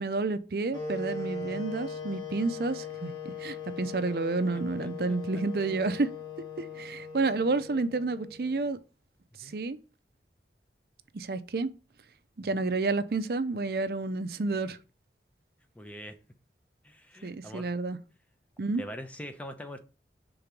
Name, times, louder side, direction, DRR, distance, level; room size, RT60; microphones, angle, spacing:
voice 1, 0.0-6.1 6.6-8.8 9.4-9.8 11.1-11.7 12.4-14.8 17.2-18.0 18.6-18.8, right 3 dB, 60° right, 0.5 m, -30 dB
sound 1, 0.7-8.7, left 4 dB, 25° left, 1.5 m, -40 dB
voice 2, 4.8-5.4 9.4-9.6 15.7-16.2 16.8-17.7 18.7-19.8, equal, 10° left, 0.7 m, -43 dB
5.2 x 3.9 x 5.9 m
head